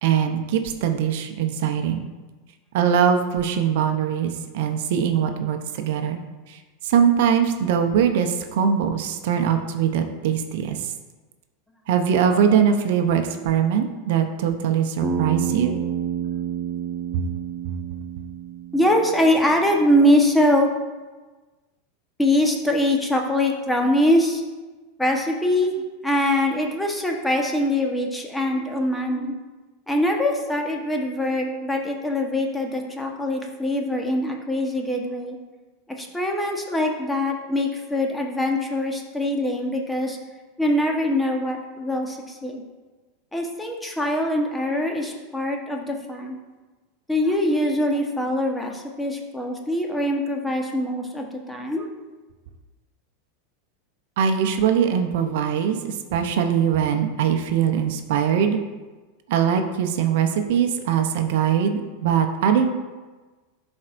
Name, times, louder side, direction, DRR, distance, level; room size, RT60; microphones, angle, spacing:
voice 1, 0.0-2.1 2.7-6.2 6.5-10.9 11.9-15.8 17.1-17.2 54.2-58.6 59.3-62.7, right 8 dB, 70° right, 5 dB, 0.6 m, -22 dB
Bass guitar, 15.0-19.3, right 8 dB, 25° right, 1.2 m, -29 dB
voice 2, 18.7-20.7 22.2-24.4 25.0-25.7 26.0-29.3 29.9-35.4 36.0-40.2 40.6-42.6 43.3-46.4 47.1-51.9, left 1 dB, 10° left, 2 dB, 1.1 m, -23 dB
11.5 x 4.4 x 2.5 m, 1.3 s
hypercardioid pair, 105°, 0 cm